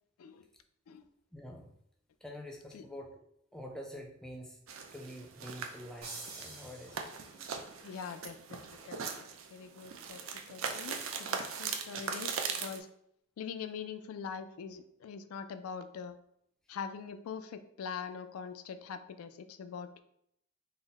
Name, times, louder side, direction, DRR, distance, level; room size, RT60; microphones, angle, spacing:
voice 1, 1.3-1.7 2.2-3.2 3.5-4.6 4.9-7.0 7.3-7.5, equal, 5° left, 1 dB, 0.3 m, -46 dB
sound 1, 4.7-12.8, right 6 dB, 70° right, 0.4 m, -40 dB
sound 2, 6.0-7.6, right 3 dB, 90° right, 1.1 m, -47 dB
voice 2, 7.8-9.2 9.5-10.2 10.5-12.9 13.4-16.2 16.7-20.0, left 6 dB, 90° left, 10 dB, 0.3 m, -43 dB
3.9 x 2.0 x 4.0 m, 0.73 s
head